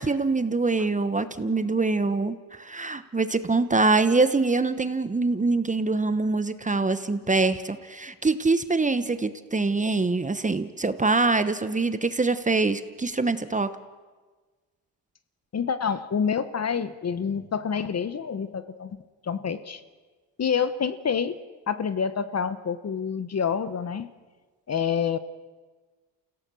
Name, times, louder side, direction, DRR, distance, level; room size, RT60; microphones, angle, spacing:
voice 1, 0.0-13.7, right 3 dB, 20° right, 12 dB, 1.0 m, -24 dB
voice 2, 15.5-19.0 19.2-19.8 20.4-21.3 21.7-24.1 24.7-25.2, left 7 dB, 35° left, 13 dB, 1.1 m, -27 dB
28.5 x 16.5 x 6.3 m, 1.4 s
cardioid pair, 85°, 42 cm